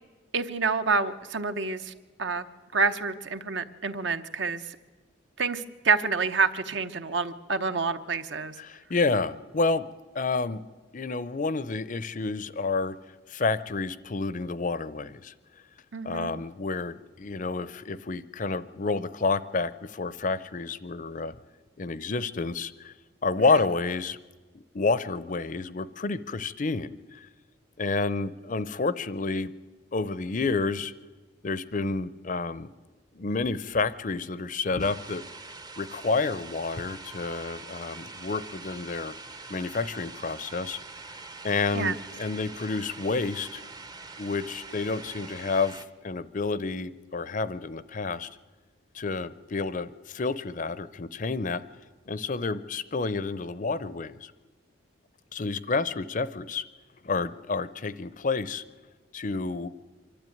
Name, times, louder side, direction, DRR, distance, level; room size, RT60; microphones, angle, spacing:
voice 1, 0.3-1.9 2.2-2.4 2.7-4.8 5.4-8.6 15.9-16.3 41.7-41.9, right 4 dB, 60° right, 10 dB, 0.9 m, -28 dB
voice 2, 8.6-9.9 10.1-10.6 10.9-13.0 13.3-15.3 16.0-21.4 21.8-22.9 23.2-24.2 24.7-27.3 27.8-29.5 29.9-30.9 31.4-32.7 33.1-35.3 35.8-39.1 39.5-40.8 41.4-43.6 44.2-45.8 46.0-48.3 48.9-51.6 52.1-54.3 55.3-56.6 57.0-58.6 59.1-59.7, left 3 dB, 40° left, 16 dB, 0.6 m, -29 dB
sound 1, 34.8-45.8, right 3 dB, 20° right, 0.7 m, -44 dB
25.0 x 12.0 x 9.2 m, 1.3 s
head